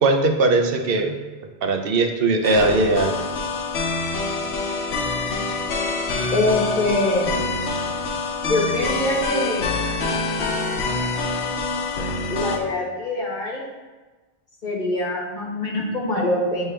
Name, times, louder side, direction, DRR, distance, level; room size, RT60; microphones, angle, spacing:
voice 1, 0.0-1.2 1.6-3.2, right 2 dB, 65° right, 5 dB, 0.8 m, -19 dB
sound 1, 2.4-12.6, left 3 dB, 85° left, 1.0 m, -26 dB
voice 2, 6.3-7.3 8.5-9.7 12.3-13.6 14.6-16.7, left 2 dB, 50° left, -4 dB, 1.5 m, -24 dB
8.5 x 3.4 x 3.3 m, 1.2 s
omnidirectional pair, 1.1 m